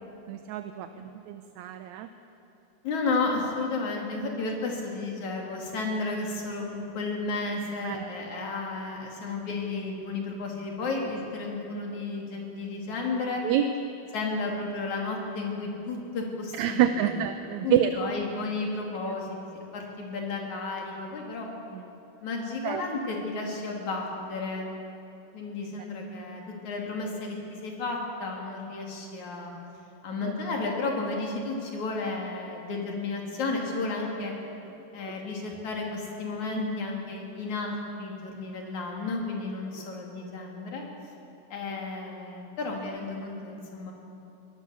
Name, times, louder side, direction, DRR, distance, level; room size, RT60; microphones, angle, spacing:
voice 1, 0.3-2.1 7.8-8.1 13.4-13.7 16.6-18.0 19.0-19.1 21.7-21.8 22.6-22.8 30.2-30.3, right 11 dB, 75° right, 8 dB, 1.9 m, -27 dB
voice 2, 2.8-13.4 14.1-17.1 17.6-21.5 22.2-24.7 25.3-29.5 30.0-34.3 34.9-40.8 41.5-43.9, left 3 dB, 65° left, 0 dB, 4.2 m, -32 dB
23.5 x 18.5 x 7.2 m, 2.9 s
omnidirectional pair, 3.6 m